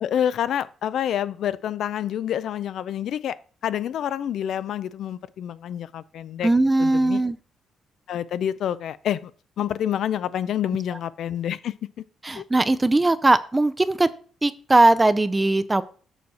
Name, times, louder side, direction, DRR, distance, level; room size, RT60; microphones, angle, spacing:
voice 1, 0.0-3.4 3.6-6.5 6.8-7.2 8.1-9.3 9.6-11.7 12.4-12.5, left 10 dB, 65° left, 0.4 m, -27 dB
voice 2, 6.4-7.4 12.2-14.1 14.4-15.8, right 2 dB, 15° right, 0.4 m, -19 dB
6.9 x 6.4 x 4.1 m
cardioid pair, 145°, 0 cm